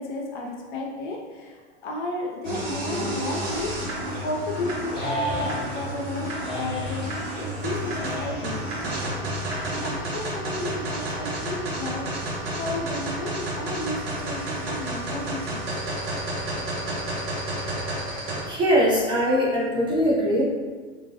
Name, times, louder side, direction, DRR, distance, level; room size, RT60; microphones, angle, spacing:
voice 1, 0.0-8.9 9.6-15.8, left 1 dB, 45° left, 0 dB, 0.5 m, -33 dB
sound 1, 2.4-18.4, right 1 dB, 60° right, 1.0 m, -31 dB
sound 2, 5.0-5.9 6.4-7.1 7.9-8.7 9.4-10.1 10.9-11.7, left 2 dB, 15° left, 1.0 m, -36 dB
voice 2, 18.4-20.4, equal, 15° right, -6 dB, 0.5 m, -21 dB
3.0 x 2.2 x 2.6 m, 1.5 s
figure-of-eight pair, 85°, 35 cm